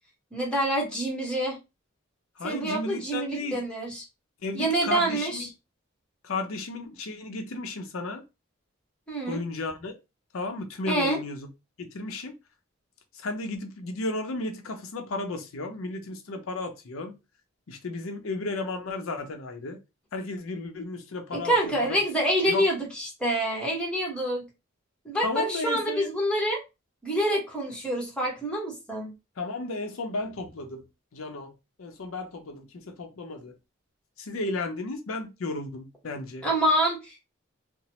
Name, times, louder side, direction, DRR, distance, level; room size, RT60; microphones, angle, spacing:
voice 1, 0.3-1.6 2.4-4.0 4.5-5.5 9.1-9.4 10.9-11.2 21.3-24.4 25.0-26.6 27.0-29.1 36.4-37.2, right 1 dB, 5° left, 0.9 m, -27 dB
voice 2, 2.4-3.6 4.4-5.5 6.2-8.2 9.3-9.9 10.3-11.4 11.8-12.3 13.2-17.1 17.7-19.8 20.1-22.1 22.5-22.7 25.2-26.1 29.4-30.8 31.1-31.5 31.8-33.5 34.2-36.4, left 2 dB, 80° left, 0.6 m, -34 dB
2.9 x 2.0 x 2.8 m
head